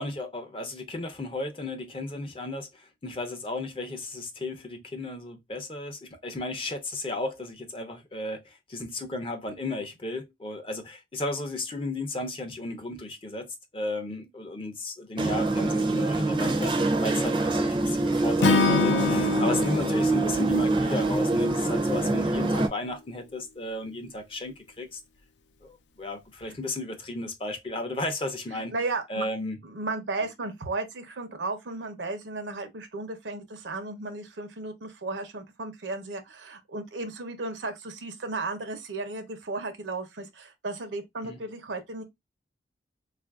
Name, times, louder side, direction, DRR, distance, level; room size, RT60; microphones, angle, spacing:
voice 1, 0.0-25.0 25.6-28.7 29.1-29.6 41.2-41.4, left 2 dB, 30° left, 0.6 m, -34 dB
sound 1, 15.2-22.7, right 2 dB, 25° right, 0.5 m, -25 dB
Acoustic guitar / Strum, 18.4-21.7, left 4 dB, 75° left, 0.5 m, -26 dB
voice 2, 28.5-29.3 29.6-42.0, right 3 dB, 85° right, 0.7 m, -34 dB
3.8 x 2.5 x 2.3 m
head